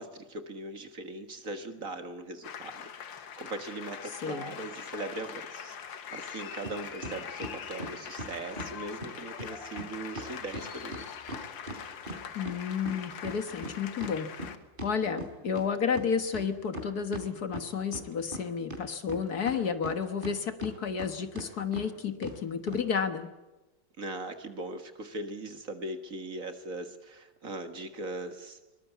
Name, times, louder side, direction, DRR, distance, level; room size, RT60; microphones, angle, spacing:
voice 1, 0.0-11.1 24.0-28.6, right 2 dB, 45° right, 7 dB, 2.0 m, -40 dB
sound 1, 2.4-14.6, left 8 dB, 80° left, 2.0 m, -43 dB
voice 2, 4.2-4.5 12.4-14.3 14.8-23.3, left 6 dB, 55° left, 9 dB, 1.8 m, -31 dB
sound 2, 6.6-6.8 7.0-8.7 9.0-9.1 9.4-9.5 9.8-9.9 10.2-12.6 12.9-15.7 15.9-16.0 16.3-17.3 17.5-18.4 18.7-20.3 20.6-21.1 21.4-21.5 21.7-21.9 22.2-22.4 22.7-22.8, right 1 dB, 25° right, 3.8 m, -39 dB
23.0 x 20.5 x 8.3 m, 1.1 s
omnidirectional pair, 2.0 m